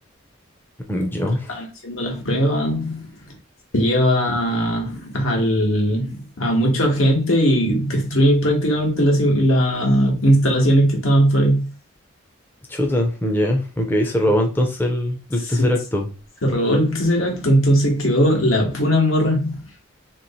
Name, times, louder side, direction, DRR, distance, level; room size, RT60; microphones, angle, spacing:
voice 1, 0.9-1.5 12.7-16.1, left 1 dB, 10° left, 0.5 m, -21 dB
voice 2, 1.5-3.1 3.7-11.7 15.5-15.7 16.4-19.6, equal, 80° left, 1.4 m, -19 dB
3.0 x 2.9 x 4.1 m
head